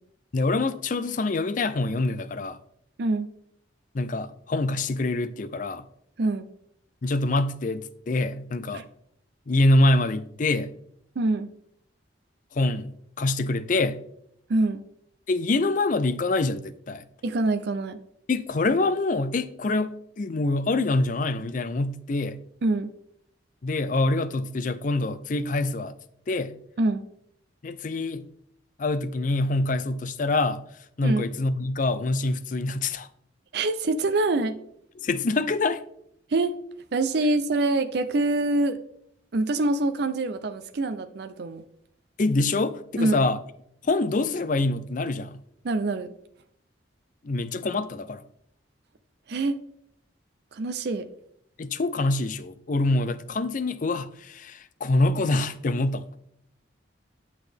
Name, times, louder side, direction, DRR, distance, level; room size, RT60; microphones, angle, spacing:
voice 1, 0.3-2.6 3.9-5.9 7.0-8.8 9.5-10.7 12.5-14.0 15.3-17.0 18.3-22.4 23.6-25.9 26.3-26.6 27.6-28.3 28.8-30.6 31.0-33.1 35.0-35.8 42.2-43.4 43.8-45.4 47.2-48.2 51.6-56.1, left 2 dB, 45° left, 0.4 m, -25 dB
voice 2, 3.0-3.3 6.2-6.5 8.7-8.8 11.2-11.5 14.5-14.8 17.2-18.0 22.6-22.9 26.8-27.0 31.0-31.3 33.5-34.5 36.3-36.6 36.9-38.8 39.3-41.6 43.0-43.2 45.6-46.1 49.3-49.6 50.5-51.1, right 2 dB, 60° right, 0.5 m, -25 dB
9.6 x 6.2 x 3.4 m
head